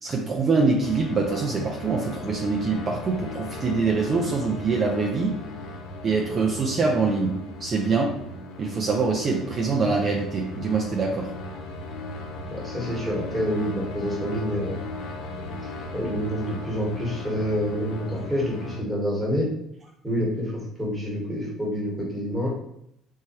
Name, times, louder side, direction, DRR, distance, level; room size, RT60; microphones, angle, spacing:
voice 1, 0.0-5.4 6.0-7.3 7.6-8.1 8.6-11.3, right 4 dB, 40° right, 0 dB, 0.4 m, -24 dB
sound 1, 0.8-18.8, left 2 dB, 80° left, 0.4 m, -37 dB
voice 2, 12.5-14.8 15.9-19.5 20.0-22.5, equal, 5° right, -4 dB, 1.3 m, -27 dB
3.1 x 2.2 x 2.9 m, 0.76 s
supercardioid pair, 95°, 0 cm